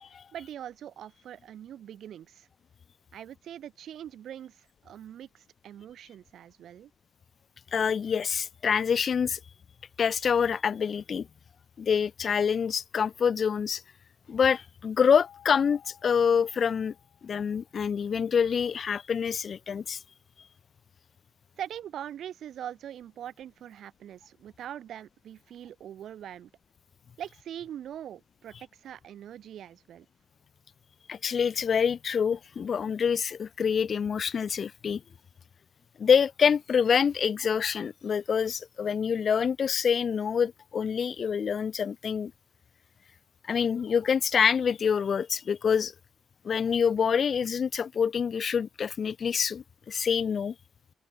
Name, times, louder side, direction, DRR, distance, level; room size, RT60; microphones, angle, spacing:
voice 1, 0.3-2.5 3.1-6.9 21.6-26.5 27.2-30.1, right 10 dB, 80° right, 0.8 m, -42 dB
voice 2, 7.7-9.4 10.0-11.3 11.8-13.8 14.3-16.9 17.2-20.0 31.1-35.0 36.0-42.3 43.5-45.9 46.4-50.5, left 7 dB, 50° left, 0.4 m, -26 dB
sound 1, 15.2-18.1, left 9 dB, 75° left, 3.3 m, -57 dB
open air
cardioid pair, 110°, 0 cm